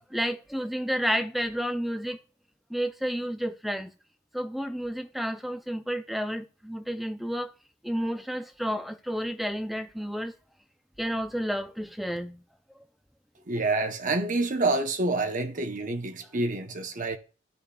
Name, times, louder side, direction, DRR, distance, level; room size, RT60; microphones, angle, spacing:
voice 1, 0.1-2.2 2.7-3.9 4.3-7.5 7.8-10.3 11.0-12.4, equal, ahead, 0.4 m, -31 dB
voice 2, 13.5-17.2, right 2 dB, 45° right, 0.8 m, -27 dB
14.0 x 5.1 x 2.3 m
head